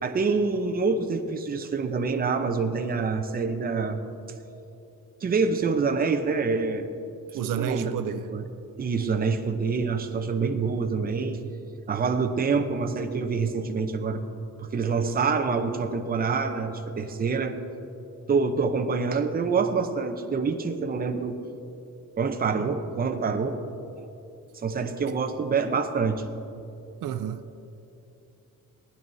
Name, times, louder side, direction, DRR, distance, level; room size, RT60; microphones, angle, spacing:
voice 1, 0.0-4.0 5.2-6.9 7.3-7.9 8.3-8.4 8.8-11.4 11.9-14.2 14.6-17.6 18.3-21.4 22.2-23.6 24.6-26.2, right 4 dB, 25° right, 0.7 m, -26 dB
voice 2, 7.3-8.3 25.1-25.2 27.0-27.6, right 8 dB, 70° right, 0.6 m, -30 dB
19.0 x 10.5 x 2.7 m
cardioid pair, 155°, 33 cm